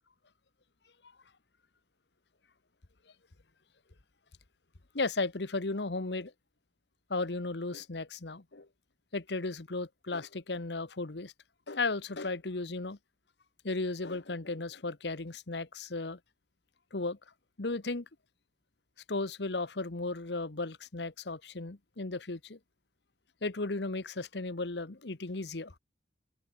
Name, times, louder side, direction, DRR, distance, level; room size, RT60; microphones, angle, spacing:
voice 1, 4.9-6.3 7.1-8.7 9.1-11.3 11.7-13.0 13.6-16.2 16.9-17.2 17.6-18.0 19.1-22.6 23.4-25.7, left 3 dB, 65° left, 1.2 m, -35 dB
open air
head